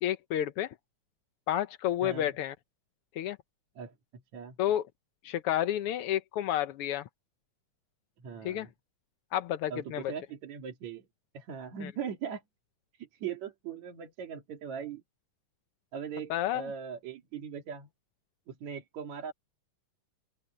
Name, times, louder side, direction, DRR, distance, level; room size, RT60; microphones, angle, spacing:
voice 1, 0.0-0.7 1.5-2.5 3.1-3.4 4.6-4.9 5.2-7.1 8.4-8.7 9.3-10.1 11.8-11.9 16.3-16.7, left 11 dB, 75° left, 1.3 m, -30 dB
voice 2, 2.0-2.3 3.8-4.6 8.2-8.7 9.7-11.1 11.3-12.4 12.9-15.0 15.9-17.9 18.5-19.3, right 7 dB, 65° right, 3.4 m, -40 dB
open air
omnidirectional pair, 3.5 m